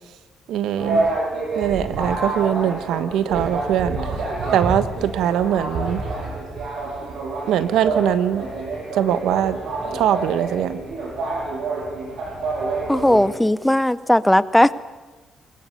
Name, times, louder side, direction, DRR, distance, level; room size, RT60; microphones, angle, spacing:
voice 1, 0.5-1.1 1.5-4.0 4.5-6.0 7.5-8.4 8.9-9.6 9.9-10.8, right 10 dB, 85° right, 12 dB, 1.3 m, -21 dB
sound 1, 0.8-13.3, right 3 dB, 65° right, 7.4 m, -27 dB
voice 2, 12.9-14.7, left 1 dB, 5° left, 16 dB, 0.8 m, -17 dB
22.5 x 21.0 x 8.2 m, 1.2 s
cardioid pair, 90°, 0 cm